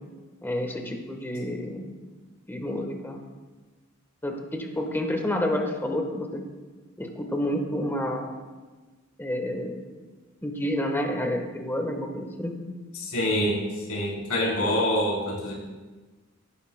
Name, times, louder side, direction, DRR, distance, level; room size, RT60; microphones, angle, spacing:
voice 1, 0.4-1.9 2.5-3.2 4.2-6.4 7.0-8.4 9.2-9.8 10.4-12.5, left 1 dB, 10° left, 3 dB, 1.2 m, -29 dB
voice 2, 13.0-13.6 13.9-15.5, left 1 dB, 85° left, -3 dB, 3.3 m, -25 dB
16.5 x 9.9 x 2.2 m, 1.3 s
head